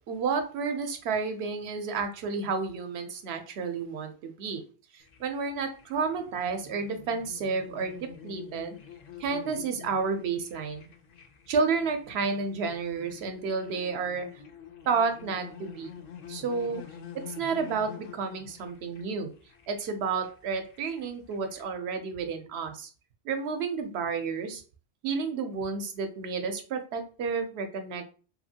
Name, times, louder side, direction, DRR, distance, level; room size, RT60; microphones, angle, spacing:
voice 1, 0.1-4.6 4.9-8.0 8.2-8.8 9.2-10.9 11.5-14.3 14.9-15.9 16.3-16.8 17.2-19.3 19.7-22.9 23.2-24.6 25.0-28.1, right 5 dB, 75° right, 6 dB, 0.8 m, -31 dB
sound 1, 5.0-21.6, left 8 dB, 55° left, 0.5 m, -48 dB
2.7 x 2.5 x 2.7 m, 0.38 s
omnidirectional pair, 1.1 m